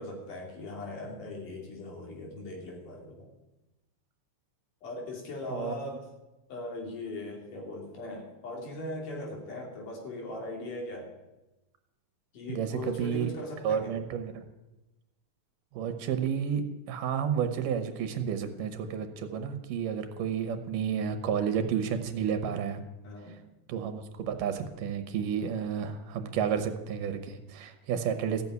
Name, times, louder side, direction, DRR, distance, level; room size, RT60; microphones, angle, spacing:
voice 1, 0.0-3.3 4.8-6.1 6.5-11.1 12.3-14.0 23.0-23.4, left 2 dB, 80° left, 0 dB, 4.1 m, -39 dB
voice 2, 12.5-13.3 13.6-14.4 15.7-16.6 16.9-22.8 23.7-28.4, right 7 dB, 90° right, 8 dB, 2.7 m, -31 dB
15.0 x 7.1 x 9.5 m, 1.0 s
omnidirectional pair, 3.7 m